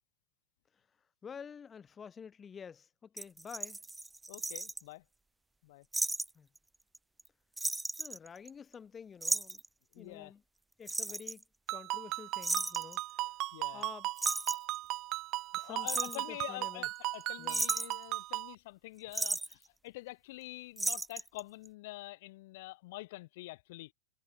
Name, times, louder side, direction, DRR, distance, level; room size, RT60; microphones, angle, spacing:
voice 1, 1.2-3.8 6.4-6.5 8.0-9.6 10.0-10.4 10.8-11.4 11.7-13.3 13.7-14.1 15.6-16.9 17.4-17.6, left 6 dB, 15° left, 1.7 m, -49 dB
sound 1, 3.2-4.8 5.9-6.3 6.6-6.7 6.9-7.3 7.6-8.7 9.2-9.7 10.9-11.4 12.4-13.0 13.8-13.9 14.2-14.8 15.6-16.2 17.0-17.2 17.5-18.0 19.1-19.5 20.8-21.4 21.7-21.8, right 2 dB, 5° right, 0.4 m, -34 dB
voice 2, 4.3-5.0 5.6-5.8 9.9-10.3 13.5-13.8 15.5-23.9, left 20 dB, 50° left, 1.1 m, -46 dB
Ringtone, 11.7-18.5, right 17 dB, 30° right, 0.9 m, -37 dB
supercardioid pair, 170°, 0 cm